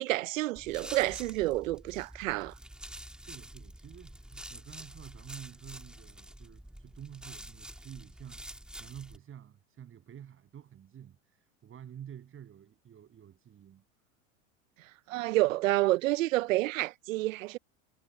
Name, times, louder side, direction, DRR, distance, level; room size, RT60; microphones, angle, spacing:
voice 1, 0.0-2.6 15.1-17.6, right 18 dB, 90° right, 0.7 m, -29 dB
sound 1, 0.6-9.2, right 1 dB, ahead, 2.5 m, -47 dB
voice 2, 3.2-13.8, right 9 dB, 35° right, 7.3 m, -49 dB
supercardioid pair, 115°, 38 cm